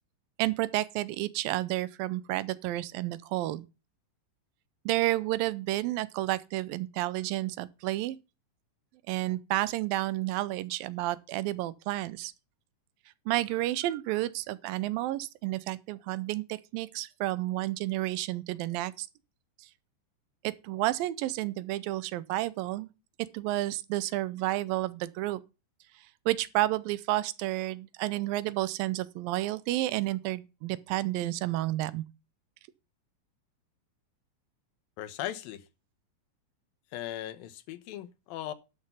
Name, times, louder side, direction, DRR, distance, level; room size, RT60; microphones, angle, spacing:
voice 1, 0.4-3.7 4.9-8.2 9.1-12.3 13.3-19.1 20.4-22.9 23.3-25.4 26.3-32.0, right 16 dB, 85° right, 2.5 m, -31 dB
voice 2, 35.0-35.7 36.9-38.5, left 12 dB, 90° left, 2.8 m, -38 dB
11.5 x 6.6 x 5.7 m
omnidirectional pair, 4.0 m